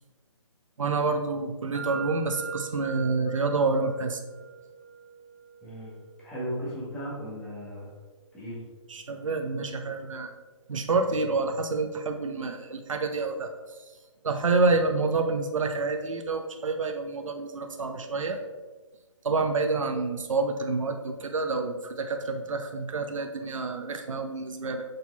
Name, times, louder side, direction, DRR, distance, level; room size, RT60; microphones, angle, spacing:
voice 1, 0.8-4.2 8.9-10.3 10.7-13.5 14.2-18.4 19.2-24.8, right 3 dB, 75° right, 5 dB, 0.9 m, -28 dB
sound 1, 1.7-9.6, right 6 dB, 20° right, 0.5 m, -43 dB
voice 2, 5.6-7.9 8.3-8.6, equal, 5° left, -8 dB, 1.2 m, -36 dB
6.6 x 4.4 x 4.1 m, 1.3 s
hypercardioid pair, 175°, 17 cm